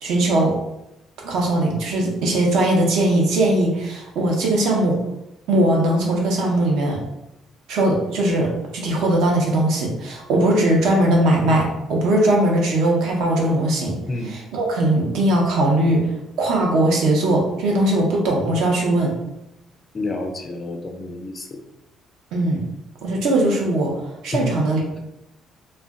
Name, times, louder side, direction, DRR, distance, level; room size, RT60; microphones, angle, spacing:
voice 1, 0.0-0.5 1.2-5.0 5.5-7.0 7.7-14.0 14.2-19.1 22.3-22.6 23.0-23.9 24.2-25.0, right 1 dB, 70° right, -1 dB, 0.7 m, -20 dB
voice 2, 19.9-21.6 24.3-24.5, left 2 dB, 25° left, 3 dB, 0.3 m, -29 dB
2.5 x 2.2 x 3.5 m, 0.88 s
cardioid pair, 170°, 0 cm